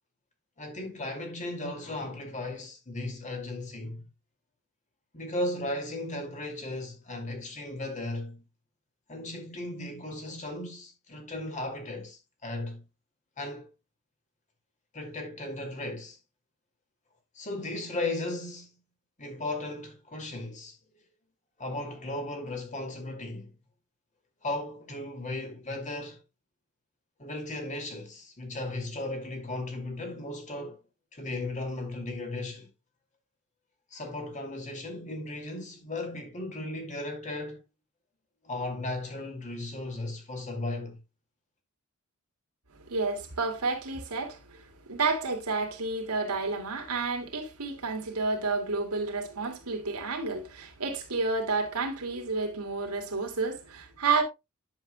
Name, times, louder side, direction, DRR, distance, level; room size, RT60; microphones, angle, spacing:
voice 1, 0.6-4.0 5.1-8.4 9.1-12.8 13.4-13.7 14.9-16.2 17.3-18.7 19.2-20.8 21.6-23.5 24.4-26.2 27.2-30.8 31.1-32.7 33.9-37.6 38.4-41.0, left 2 dB, 35° left, 2.5 m, -36 dB
voice 2, 42.9-54.2, right 3 dB, 90° right, 2.4 m, -30 dB
10.5 x 7.4 x 2.2 m
head